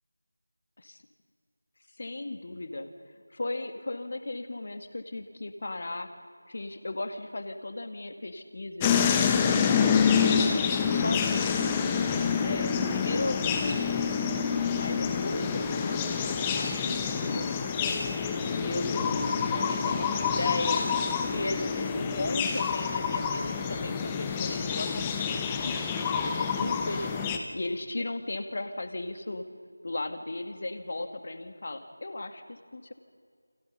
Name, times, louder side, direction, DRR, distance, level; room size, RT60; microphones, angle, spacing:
voice 1, 2.0-2.9 3.3-6.1 6.5-10.5 10.9-11.7 12.4-14.3 14.8-17.6 18.5-20.9 21.3-27.1 27.5-29.5 29.8-32.9, left 2 dB, 40° left, 8 dB, 2.3 m, -36 dB
sound 1, 8.8-27.4, left 6 dB, 10° left, 1.1 m, -27 dB
30.0 x 26.0 x 5.6 m, 2.2 s
figure-of-eight pair, 170°, 0 cm